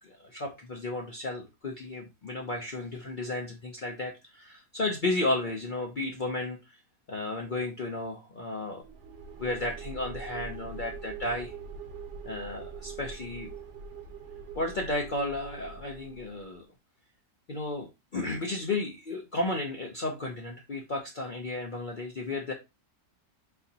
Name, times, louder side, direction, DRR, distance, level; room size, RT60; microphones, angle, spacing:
voice 1, 0.0-6.8 7.1-8.8 9.4-11.5 12.2-13.5 14.5-16.7 17.5-22.5, left 2 dB, 65° left, 1 dB, 0.4 m, -33 dB
sound 1, 8.8-16.6, right 5 dB, 55° right, 0.9 m, -43 dB
3.9 x 3.9 x 2.7 m, 0.24 s
omnidirectional pair, 1.8 m